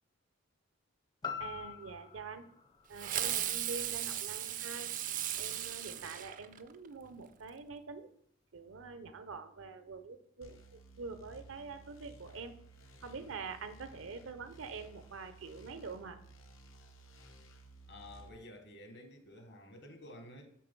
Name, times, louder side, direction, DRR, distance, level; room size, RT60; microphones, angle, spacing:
sound 1, 1.2-5.3 5.8-5.9, left 7 dB, 20° left, 0.4 m, -46 dB
voice 1, 1.4-2.4 2.9-4.9 5.4-8.1 8.5-12.5 13.0-16.2, right 4 dB, 80° right, 0.7 m, -45 dB
Fireworks, 3.0-6.9, right 11 dB, 40° right, 0.4 m, -36 dB
sound 2, 10.4-18.3, right 2 dB, 85° left, 0.8 m, -56 dB
voice 2, 17.9-20.5, left 1 dB, 60° left, 1.2 m, -51 dB
7.6 x 3.8 x 5.3 m
head